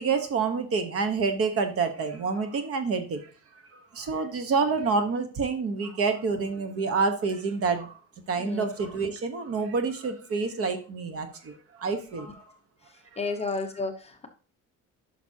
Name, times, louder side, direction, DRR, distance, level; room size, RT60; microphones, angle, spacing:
voice 1, 0.0-3.3 3.9-8.0 8.3-12.4, right 4 dB, 45° right, 8 dB, 1.2 m, -28 dB
voice 2, 13.2-14.3, left 3 dB, 20° left, 4 dB, 0.8 m, -32 dB
11.0 x 5.9 x 2.8 m, 0.38 s
cardioid pair, 160°, 32 cm